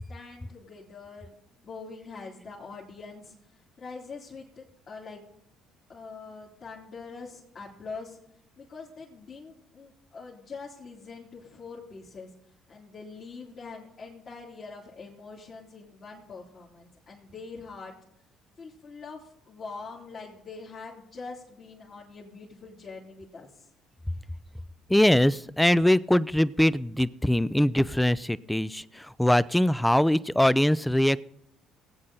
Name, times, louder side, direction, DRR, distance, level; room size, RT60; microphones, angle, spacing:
voice 1, 0.0-1.3 1.6-5.2 5.9-8.2 8.6-12.3 12.7-17.9 18.6-23.7, left 4 dB, 50° left, -5 dB, 3.1 m, -44 dB
voice 2, 24.9-31.2, left 1 dB, 5° left, 19 dB, 0.5 m, -22 dB
19.5 x 8.6 x 3.8 m, 0.78 s
hypercardioid pair, 65°, 0 cm